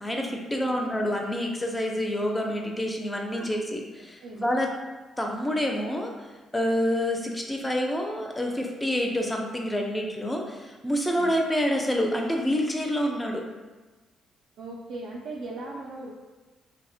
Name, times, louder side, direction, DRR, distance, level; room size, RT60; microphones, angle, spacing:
voice 1, 0.0-4.7 5.2-13.4, equal, 15° left, 1 dB, 0.4 m, -27 dB
voice 2, 3.1-3.5 4.2-4.4 11.2-11.3 14.6-16.1, right 2 dB, 75° right, -4 dB, 0.3 m, -39 dB
2.7 x 2.0 x 2.6 m, 1.3 s
cardioid pair, 90°, 0 cm